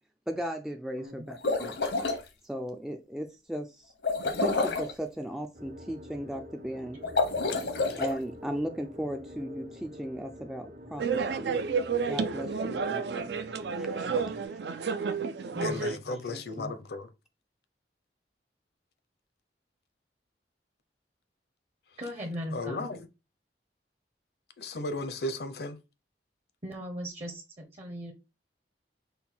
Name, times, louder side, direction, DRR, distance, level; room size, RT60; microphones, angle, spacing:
voice 1, 0.3-1.8 2.4-3.9 4.4-7.0 8.0-11.6 12.1-13.3 13.8-14.4, equal, ahead, 0.3 m, -36 dB
voice 2, 1.0-1.3 15.5-16.7 22.0-22.9 26.6-28.1, equal, 35° right, 0.8 m, -39 dB
sound 1, 1.3-2.2 4.0-4.9 7.0-8.1, left 3 dB, 80° left, 1.0 m, -28 dB
sound 2, 5.5-14.5, left 1 dB, 55° right, 1.3 m, -47 dB
sound 3, 11.0-16.0, right 5 dB, 70° right, 0.4 m, -31 dB
voice 3, 15.6-17.1 22.5-23.0 24.6-25.8, left 2 dB, 65° left, 0.7 m, -35 dB
5.5 x 2.3 x 4.3 m
head